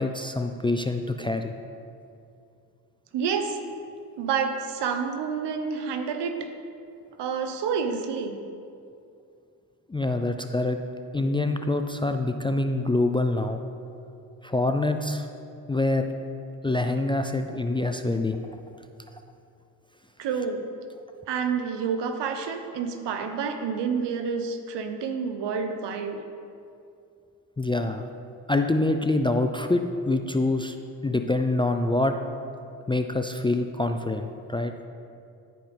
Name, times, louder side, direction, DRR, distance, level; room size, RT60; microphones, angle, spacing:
voice 1, 0.0-1.5 9.9-10.8 11.1-13.6 14.4-15.3 15.7-16.1 16.6-18.4 27.6-28.1 28.5-30.8 31.0-32.1 32.9-34.7, left 2 dB, 10° left, 6 dB, 0.4 m, -25 dB
voice 2, 3.1-3.6 4.2-6.5 7.2-8.4 20.2-20.7 21.3-26.2, right 6 dB, 65° right, 7 dB, 0.9 m, -29 dB
12.5 x 5.1 x 3.5 m, 2.5 s
supercardioid pair, 55°, 45 cm